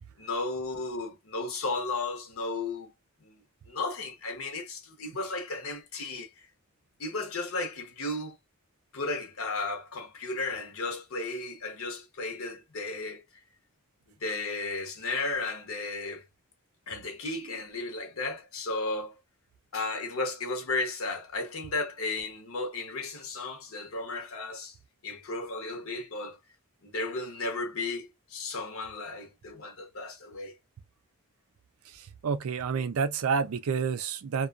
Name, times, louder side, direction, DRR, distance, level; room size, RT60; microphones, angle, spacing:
voice 1, 0.2-2.9 3.2-6.3 7.0-8.4 8.9-13.2 14.2-16.2 16.9-19.2 19.7-24.8 25.0-26.4 26.8-30.6, left 3 dB, 75° left, 0.9 m, -34 dB
voice 2, 31.9-34.5, right 5 dB, 85° right, 0.4 m, -29 dB
2.4 x 2.3 x 2.3 m
head